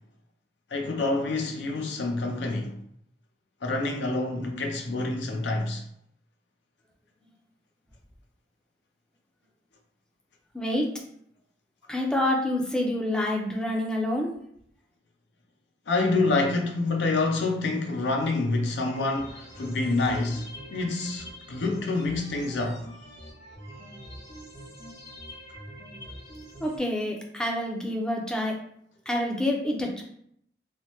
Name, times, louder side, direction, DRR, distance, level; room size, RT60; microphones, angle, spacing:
voice 1, 0.7-2.7 3.6-5.8 15.9-22.9, left 3 dB, 85° left, 0.5 m, -27 dB
voice 2, 10.5-10.9 11.9-14.3 26.6-28.6 29.1-30.0, left 1 dB, 5° left, 0.4 m, -27 dB
sound 1, 18.8-26.8, equal, 60° left, 1.4 m, -44 dB
3.2 x 2.0 x 2.8 m
head